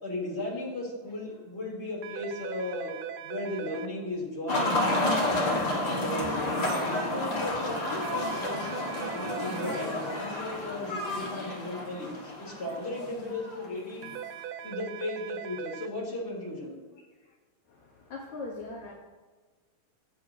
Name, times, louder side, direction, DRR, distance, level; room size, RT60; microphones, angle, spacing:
voice 1, 0.0-2.9 3.2-8.7 9.1-14.1 14.6-16.8, left 2 dB, 15° left, -4 dB, 3.8 m, -36 dB
sound 1, 2.0-3.9 8.0-9.9 14.0-15.9, right 10 dB, 80° right, 2.4 m, -40 dB
sound 2, 4.5-14.2, left 1 dB, 40° left, 1.6 m, -30 dB
voice 2, 17.7-18.9, left 3 dB, 55° left, -2 dB, 2.3 m, -40 dB
24.0 x 8.5 x 3.1 m, 1.4 s
omnidirectional pair, 4.8 m